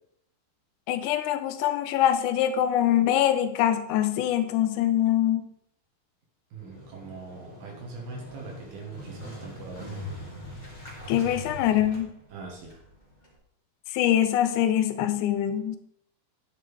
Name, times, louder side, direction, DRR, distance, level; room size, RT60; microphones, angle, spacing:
voice 1, 0.9-5.5 11.1-12.1 13.9-15.8, left 11 dB, 80° left, 9 dB, 1.8 m, -24 dB
voice 2, 6.5-10.0 12.3-12.7, right 4 dB, 80° right, -1 dB, 3.2 m, -41 dB
Motorcycle, 6.6-13.4, left 1 dB, 15° left, 1.7 m, -42 dB
9.5 x 7.3 x 3.4 m, 0.75 s
omnidirectional pair, 4.1 m